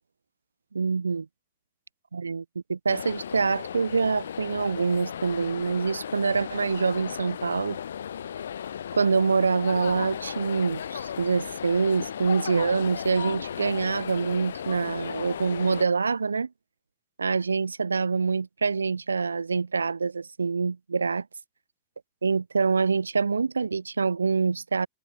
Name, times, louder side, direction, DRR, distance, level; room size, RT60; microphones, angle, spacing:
voice 1, 0.7-1.3 2.1-2.4 2.7-7.8 9.0-16.5 17.2-21.3 22.2-24.9, right 4 dB, 75° right, 0.5 m, -25 dB
sound 1, 2.9-15.9, left 9 dB, 65° left, 0.7 m, -35 dB
figure-of-eight pair, 90°, 0 cm